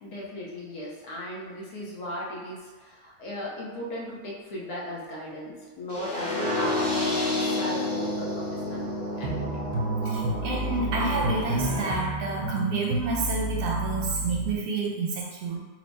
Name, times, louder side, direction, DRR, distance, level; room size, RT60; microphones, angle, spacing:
voice 1, 0.0-8.9 9.2-9.6, equal, 65° left, -4 dB, 1.3 m, -37 dB
sound 1, 5.9-11.9, left 2 dB, 30° left, 0.9 m, -30 dB
sound 2, 9.2-14.5, right 2 dB, 55° right, 0.4 m, -30 dB
voice 2, 10.0-15.6, right 3 dB, 75° right, -2 dB, 1.2 m, -29 dB
4.5 x 2.0 x 4.0 m, 1.4 s
omnidirectional pair, 1.7 m